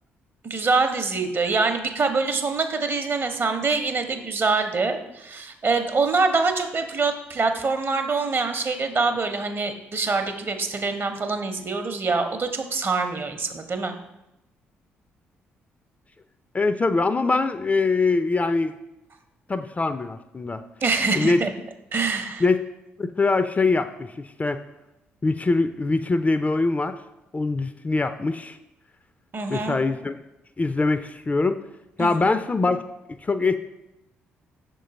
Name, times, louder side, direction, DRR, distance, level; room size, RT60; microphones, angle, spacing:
voice 1, 0.4-14.0 20.8-21.5 21.9-22.4 29.3-29.8 32.0-32.3, right 4 dB, 40° right, 7 dB, 0.7 m, -25 dB
voice 2, 16.5-18.7 19.5-20.6 21.1-21.4 22.4-22.6 23.0-24.6 25.2-27.0 27.3-28.6 29.5-30.2 30.6-31.6 32.0-32.8 33.2-33.5, left 3 dB, 25° left, 10 dB, 0.3 m, -23 dB
6.4 x 3.8 x 4.0 m, 0.91 s
figure-of-eight pair, 40°, 6 cm